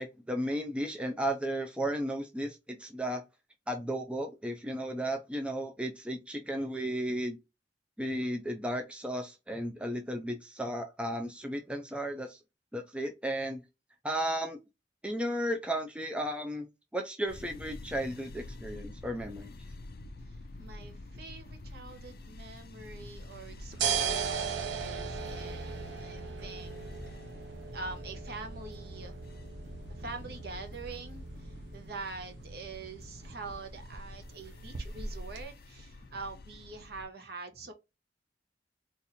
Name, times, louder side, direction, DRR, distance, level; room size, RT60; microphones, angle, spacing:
voice 1, 0.0-3.2 3.7-7.4 8.0-12.4 12.7-13.6 14.0-14.6 15.0-16.7 16.9-19.5, right 1 dB, 5° right, 0.4 m, -34 dB
sound 1, 17.3-37.1, left 2 dB, 55° left, 0.5 m, -48 dB
voice 2, 20.3-27.2 27.7-29.1 29.9-37.7, right 3 dB, 55° right, 0.9 m, -45 dB
sound 2, 23.3-35.4, right 6 dB, 80° right, 0.6 m, -38 dB
4.1 x 2.5 x 2.6 m
head